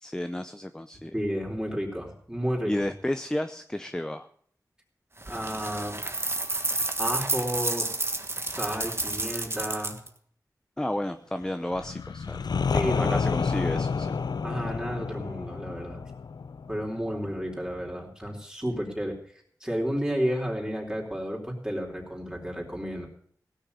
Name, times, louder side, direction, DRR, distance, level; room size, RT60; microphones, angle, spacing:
voice 1, 0.0-1.1 2.7-4.3 10.8-12.5 13.0-14.1, left 1 dB, 10° left, 9 dB, 0.6 m, -32 dB
voice 2, 1.1-2.9 5.3-5.9 7.0-7.9 8.5-10.0 12.7-13.2 14.4-16.1 16.7-19.2 19.6-23.1, equal, 10° right, -2 dB, 4.0 m, -31 dB
sound 1, 5.2-10.1, right 2 dB, 35° right, 1.4 m, -30 dB
sound 2, 11.7-17.4, left 5 dB, 85° left, 0.5 m, -30 dB
17.0 x 6.5 x 8.3 m, 0.62 s
wide cardioid pair, 80°, 7 cm